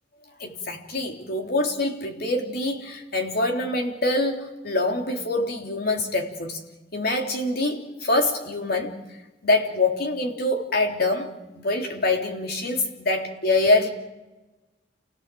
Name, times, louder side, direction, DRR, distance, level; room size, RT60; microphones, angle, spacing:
voice 1, 0.4-6.6 6.9-8.9 9.4-11.3 11.5-13.9, left 2 dB, 60° left, 2 dB, 3.7 m, -25 dB
29.0 x 18.5 x 7.8 m, 1.1 s
head